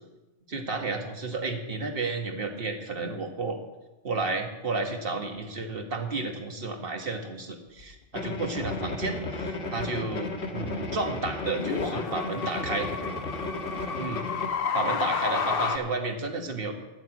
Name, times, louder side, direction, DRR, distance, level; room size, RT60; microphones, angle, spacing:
voice 1, 0.5-3.6 4.0-12.9 14.0-14.2 14.7-16.7, right 3 dB, 55° right, 4 dB, 1.6 m, -32 dB
sound 1, 7.8-7.9 10.1-10.3 11.3-15.8, left 6 dB, 60° left, 1.0 m, -31 dB
sound 2, 8.1-14.5, left 2 dB, 80° left, 1.7 m, -34 dB
10.0 x 8.9 x 7.7 m, 1.1 s
omnidirectional pair, 1.2 m